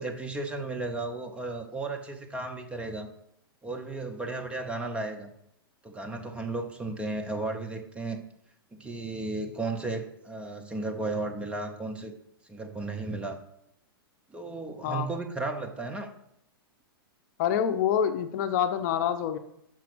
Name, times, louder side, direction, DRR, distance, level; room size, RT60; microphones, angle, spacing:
voice 1, 0.0-3.1 3.6-5.3 5.8-8.2 8.7-12.1 12.5-13.4 14.3-16.1, right 2 dB, 10° right, 5 dB, 0.8 m, -34 dB
voice 2, 17.4-19.4, left 9 dB, 50° left, 9 dB, 0.7 m, -26 dB
6.1 x 5.8 x 6.1 m, 0.76 s
hypercardioid pair, 135°, 13 cm